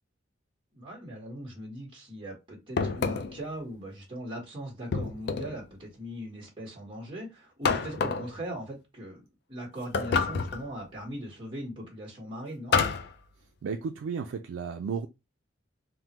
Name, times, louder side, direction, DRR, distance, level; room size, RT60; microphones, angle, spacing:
voice 1, 0.7-9.2 9.5-12.8, equal, 25° right, 1.1 m, -40 dB
sound 1, 2.8-3.5 4.9-5.6 7.6-8.3 9.9-10.7 12.7-13.1, left 5 dB, 60° left, 0.4 m, -28 dB
voice 2, 13.6-15.1, right 5 dB, 85° right, 0.3 m, -33 dB
3.4 x 2.1 x 2.9 m
head